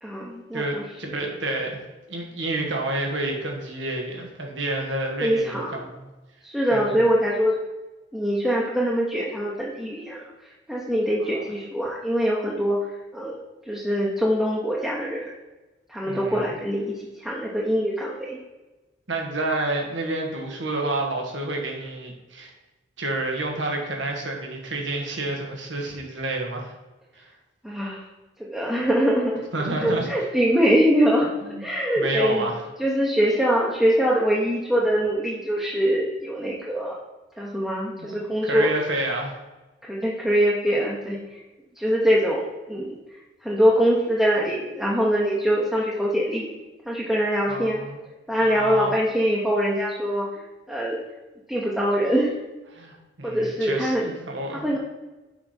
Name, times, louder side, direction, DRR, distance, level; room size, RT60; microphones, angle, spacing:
voice 1, 0.0-0.8 5.2-5.7 6.4-7.5 8.1-13.4 13.6-15.3 15.9-18.4 27.6-28.0 28.5-29.4 29.8-31.3 31.6-32.5 32.8-36.9 37.4-38.7 39.9-41.4 41.8-46.5 46.9-47.8 48.3-51.0 51.5-52.3 53.2-54.1 54.5-54.8, equal, 5° right, -6 dB, 0.9 m, -23 dB
voice 2, 0.5-1.8 2.1-6.1 6.7-7.0 11.2-11.4 16.0-16.4 19.1-22.5 23.0-26.7 27.1-27.3 29.5-30.1 31.4-31.7 32.0-32.6 38.0-38.1 38.4-39.4 47.5-48.0 48.4-48.9 52.7-54.8, right 2 dB, 90° right, 1 dB, 1.6 m, -29 dB
6.8 x 5.1 x 4.3 m, 1.1 s
head